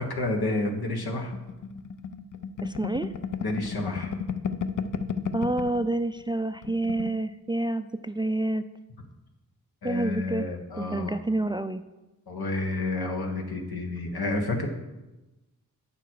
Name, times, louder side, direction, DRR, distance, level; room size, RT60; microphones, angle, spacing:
voice 1, 0.0-1.3 3.4-4.1 9.8-11.2 12.3-14.7, left 2 dB, 85° left, 3 dB, 1.4 m, -30 dB
sound 1, 1.3-5.9 6.2-6.3 6.6-7.2, left 6 dB, 55° left, 0.6 m, -33 dB
voice 2, 2.6-3.1 5.3-8.6 9.8-10.4 10.8-11.8, right 2 dB, 15° right, 10 dB, 0.3 m, -28 dB
8.9 x 6.9 x 4.7 m, 1.1 s
cardioid pair, 60°, 37 cm